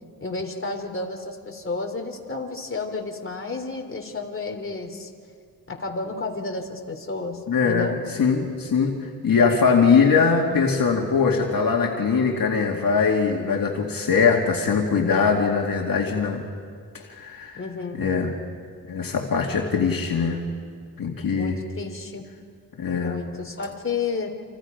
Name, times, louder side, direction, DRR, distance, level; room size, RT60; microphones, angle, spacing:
voice 1, 0.2-5.1 5.7-8.0 17.5-18.2 21.4-22.3 23.0-24.3, left 3 dB, 35° left, 3 dB, 3.1 m, -31 dB
voice 2, 7.5-7.9 8.2-16.5 16.9-17.6 18.0-18.4 18.9-20.4 21.0-21.6 22.8-23.2, left 5 dB, 65° left, 1 dB, 2.3 m, -21 dB
29.5 x 27.5 x 5.2 m, 2.1 s
wide cardioid pair, 95°, 37 cm